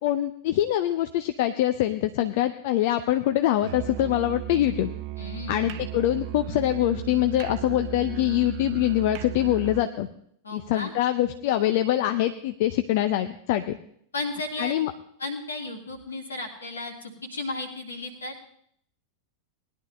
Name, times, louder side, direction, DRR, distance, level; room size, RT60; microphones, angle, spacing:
voice 1, 0.0-4.9 5.5-10.1 10.5-13.8 14.6-14.9, left 13 dB, 50° left, 9 dB, 0.6 m, -24 dB
Musical instrument, 3.6-9.9, right 13 dB, 45° right, 0.7 m, -36 dB
voice 2, 5.2-5.9 10.4-10.9 14.1-14.7 15.2-18.3, left 2 dB, 75° left, 3 dB, 2.6 m, -34 dB
19.0 x 11.0 x 3.2 m, 0.65 s
figure-of-eight pair, 90°, 0 cm